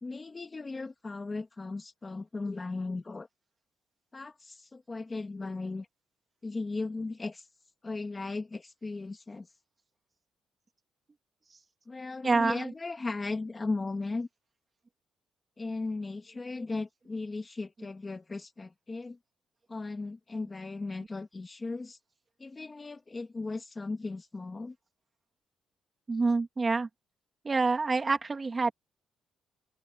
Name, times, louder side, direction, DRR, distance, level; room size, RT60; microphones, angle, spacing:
voice 1, 0.0-3.3 4.1-5.9 6.4-7.5 7.8-9.5 11.9-14.3 15.6-19.2 19.7-22.0 22.4-24.8, left 3 dB, 20° left, 1.9 m, -37 dB
voice 2, 12.2-12.7 26.1-26.9 27.4-28.7, right 3 dB, 25° right, 3.0 m, -27 dB
open air
cardioid pair, 120°, 0 cm